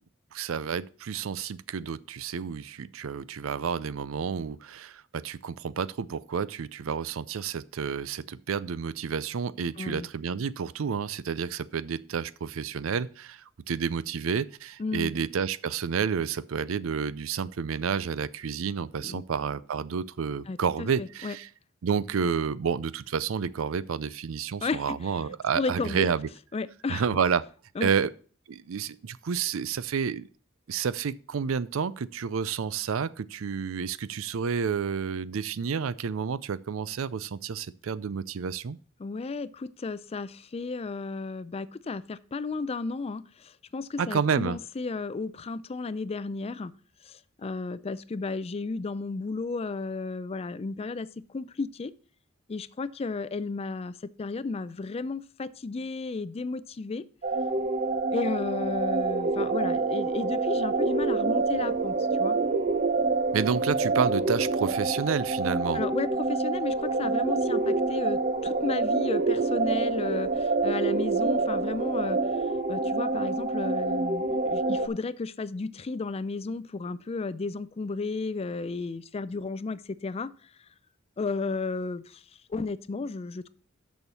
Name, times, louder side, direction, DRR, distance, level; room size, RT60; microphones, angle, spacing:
voice 1, 0.3-21.5 21.8-26.3 26.9-27.4 27.8-28.1 28.5-30.3 30.7-38.8 44.0-44.6 63.3-65.8, right 6 dB, 85° right, 0.5 m, -30 dB
voice 2, 9.8-10.1 14.8-15.1 19.0-19.2 20.5-21.4 24.6-25.0 25.5-26.1 26.5-27.0 27.8-27.9 39.0-46.7 47.0-51.9 52.5-57.0 58.1-62.4 65.7-72.2 72.7-80.3 81.2-82.2 82.5-83.5, left 3 dB, 30° left, 0.4 m, -33 dB
sound 1, 57.2-74.9, right 3 dB, 40° right, 0.8 m, -27 dB
6.9 x 6.4 x 6.8 m
head